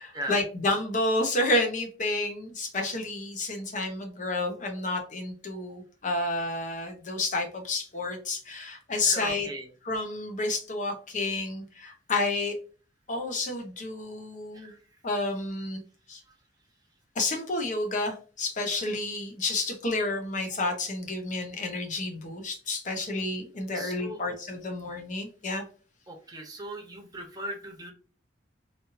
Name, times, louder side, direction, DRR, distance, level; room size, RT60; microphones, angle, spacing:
voice 1, 0.0-9.5 9.8-12.6 13.1-14.7 15.0-15.8 16.1-16.2 17.1-25.6, left 2 dB, 45° left, 3 dB, 0.9 m, -30 dB
voice 2, 9.0-9.7 14.5-14.8 23.7-24.2 26.1-27.9, right 1 dB, 20° right, 1 dB, 0.9 m, -39 dB
3.5 x 2.6 x 2.6 m, 0.37 s
head